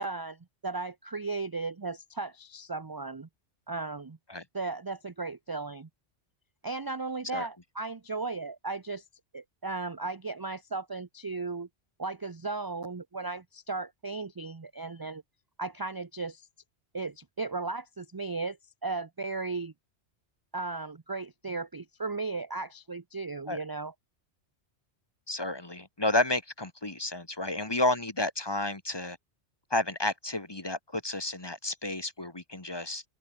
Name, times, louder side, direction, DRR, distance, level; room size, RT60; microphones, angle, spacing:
voice 1, 0.0-3.3 3.7-4.2 4.5-5.9 6.6-9.0 9.3-11.7 12.0-15.2 15.6-16.5 16.9-18.6 18.8-19.7 20.5-23.9, right 3 dB, 25° right, 0.6 m, -36 dB
voice 2, 25.3-29.2 29.7-33.0, left 2 dB, 20° left, 1.5 m, -31 dB
open air
omnidirectional pair, 1.2 m